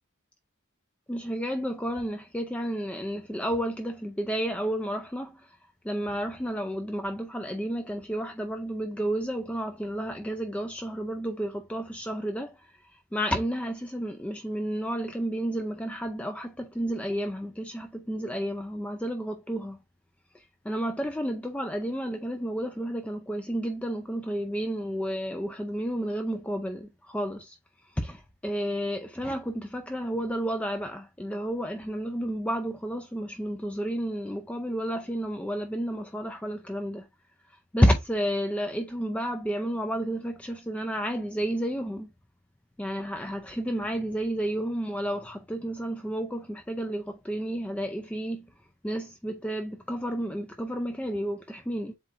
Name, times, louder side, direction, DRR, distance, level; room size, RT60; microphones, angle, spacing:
voice 1, 1.1-5.6 5.8-19.8 20.3-27.6 27.8-37.1 37.5-42.1 42.8-48.5 48.8-51.9, equal, 5° left, 0.3 m, -31 dB
7.6 x 2.7 x 2.4 m
head